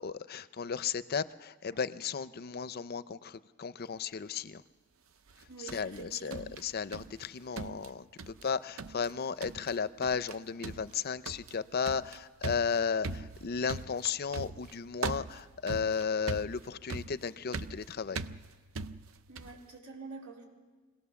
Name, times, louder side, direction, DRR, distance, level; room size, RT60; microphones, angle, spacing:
voice 1, 0.0-4.6 5.7-18.2, left 6 dB, 45° left, 14 dB, 0.5 m, -34 dB
sound 1, 5.3-7.3 7.6-8.5 8.8-9.1 9.4-9.8 10.0-10.4 10.6-19.6, right 4 dB, 65° right, 0.6 m, -41 dB
voice 2, 5.5-6.5 7.5-7.7 19.3-20.4, right 4 dB, 85° right, -1 dB, 3.9 m, -47 dB
24.0 x 17.0 x 7.0 m, 1.3 s
head